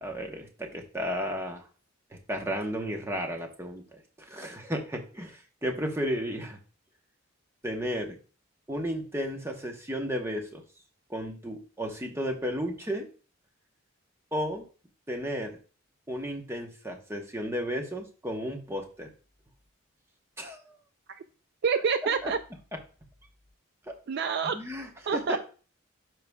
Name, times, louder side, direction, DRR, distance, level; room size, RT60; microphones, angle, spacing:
voice 1, 0.0-1.6 2.3-6.6 7.6-8.2 8.7-10.6 11.1-13.1 14.3-14.6 15.1-15.6 16.1-19.1 20.4-20.8 22.2-22.3 23.9-24.0 24.5-25.4, equal, 10° right, 2 dB, 0.9 m, -33 dB
voice 2, 21.6-22.4 24.1-24.6 25.1-25.4, right 6 dB, 50° right, 10 dB, 0.3 m, -27 dB
12.0 x 4.7 x 2.2 m, 0.37 s
head